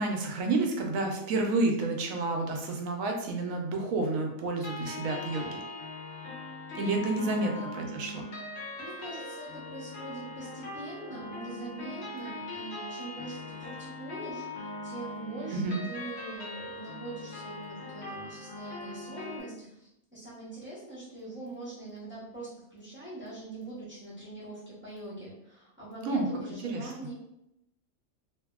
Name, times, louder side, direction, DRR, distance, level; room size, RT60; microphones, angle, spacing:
voice 1, 0.0-5.6 6.7-8.2 15.5-15.8 26.0-26.3 26.6-26.9, right 2 dB, 80° right, 2 dB, 1.0 m, -30 dB
sound 1, 4.6-19.4, left 2 dB, 60° left, 1.0 m, -41 dB
voice 2, 7.2-7.7 8.7-27.1, right 2 dB, 10° right, -9 dB, 0.7 m, -43 dB
2.7 x 2.7 x 2.3 m, 0.82 s
omnidirectional pair, 1.4 m